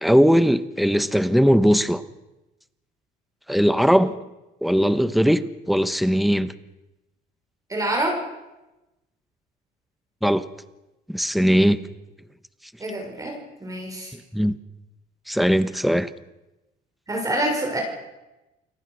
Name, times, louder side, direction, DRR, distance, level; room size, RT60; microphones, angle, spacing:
voice 1, 0.0-2.0 3.5-4.1 4.6-6.5 10.2-10.4 11.1-11.8 14.3-14.6 15.3-16.1, equal, ahead, 13 dB, 1.1 m, -19 dB
voice 2, 7.7-8.2 12.8-14.1 17.1-17.8, right 1 dB, 20° right, 1 dB, 6.0 m, -26 dB
29.0 x 18.5 x 6.4 m, 1.0 s
cardioid pair, 110°, 17 cm